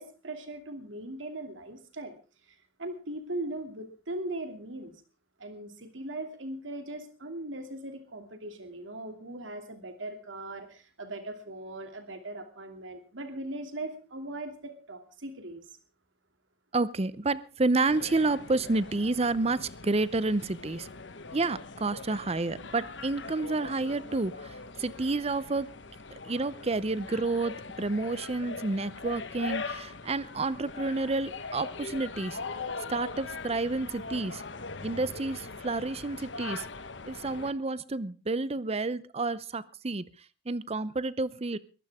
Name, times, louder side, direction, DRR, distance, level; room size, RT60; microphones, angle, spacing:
voice 1, 0.0-2.1 2.8-4.9 5.4-15.6, right 1 dB, 80° right, 6 dB, 2.9 m, -39 dB
voice 2, 16.7-20.9 21.3-25.7 26.2-32.4 32.9-34.4 34.8-36.7 37.1-40.1 40.5-41.6, right 3 dB, 30° right, 18 dB, 0.7 m, -30 dB
sound 1, 17.9-37.5, left 4 dB, 70° left, 1.3 m, -41 dB
22.0 x 15.5 x 3.6 m, 0.34 s
head